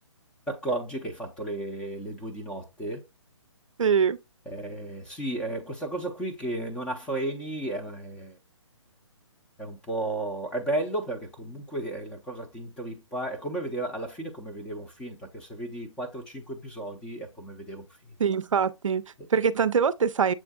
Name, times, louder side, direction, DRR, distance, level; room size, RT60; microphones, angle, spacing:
voice 1, 0.5-3.1 4.5-8.4 9.6-18.1 19.2-19.3, right 2 dB, 5° left, 0.5 m, -34 dB
voice 2, 3.8-4.2 18.2-19.0 19.3-20.3, right 6 dB, 85° right, 0.4 m, -23 dB
7.3 x 2.5 x 2.3 m
hypercardioid pair, 145°, 16 cm